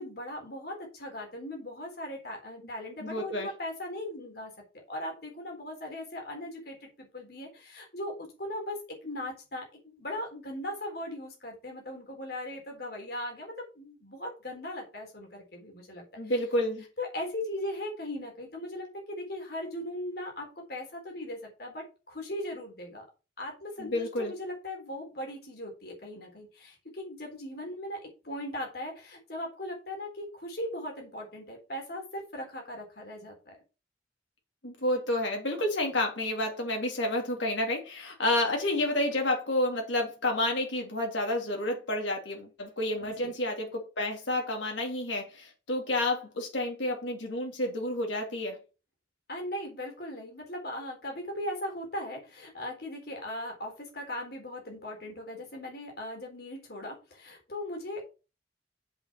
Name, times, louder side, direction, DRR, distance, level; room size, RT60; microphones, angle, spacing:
voice 1, 0.0-4.5 4.9-8.8 9.0-16.0 17.0-23.0 23.4-33.6 43.0-43.3 49.3-58.0, left 1 dB, 55° left, 3.9 m, -38 dB
voice 2, 3.0-3.5 16.2-16.8 23.8-24.3 34.6-48.6, left 1 dB, 80° left, 3.2 m, -30 dB
7.8 x 5.4 x 5.9 m
head